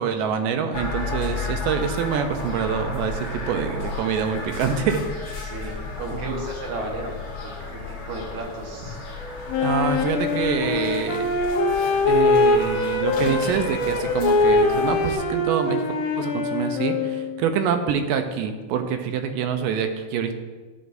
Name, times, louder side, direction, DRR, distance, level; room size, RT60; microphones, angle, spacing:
voice 1, 0.0-5.0 6.1-6.4 9.6-11.3 12.1-15.8 16.2-20.3, right 7 dB, 80° right, 7 dB, 2.2 m, -26 dB
sound 1, 0.7-15.2, left 3 dB, 60° left, 1.4 m, -33 dB
voice 2, 5.4-7.8 8.1-9.0, right 1 dB, 65° right, 0 dB, 2.4 m, -34 dB
Wind instrument woodwind instrument, 9.5-17.5, left 3 dB, 85° left, 2.5 m, -22 dB
12.0 x 6.8 x 2.6 m, 1.3 s
omnidirectional pair, 3.9 m